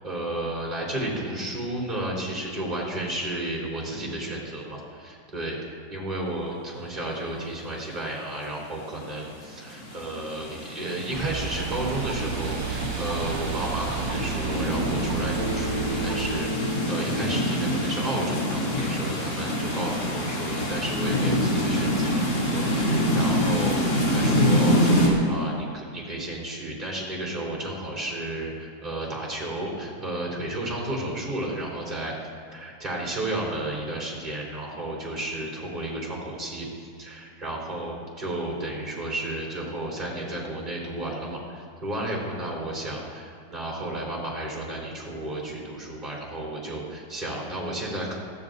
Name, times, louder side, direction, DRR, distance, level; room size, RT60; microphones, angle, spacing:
voice 1, 0.0-5.6 5.9-32.1 32.5-48.1, right 1 dB, 25° right, -3 dB, 3.8 m, -32 dB
sound 1, 9.1-25.1, equal, 85° left, 3.6 m, -26 dB
sound 2, 11.1-16.4, right 8 dB, 75° right, 1.7 m, -32 dB
Bass guitar, 15.4-19.6, equal, 25° left, 0.5 m, -35 dB
21.5 x 16.0 x 2.7 m, 2.1 s
omnidirectional pair, 2.0 m